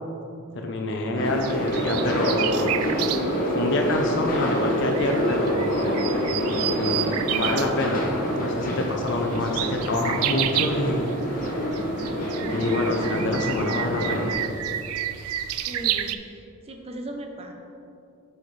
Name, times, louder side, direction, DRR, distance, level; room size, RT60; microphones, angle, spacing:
voice 1, 0.5-2.7 3.5-6.1 6.5-8.0 8.4-11.5 12.5-14.4, left 2 dB, 55° left, 2 dB, 0.6 m, -27 dB
sound 1, 1.1-14.3, equal, 40° left, 1.0 m, -27 dB
voice 2, 1.1-1.7 15.7-17.5, right 1 dB, 25° right, 3 dB, 0.6 m, -38 dB
sound 2, 1.3-16.2, right 11 dB, 85° right, 0.3 m, -32 dB
8.1 x 5.7 x 3.3 m, 2.7 s
head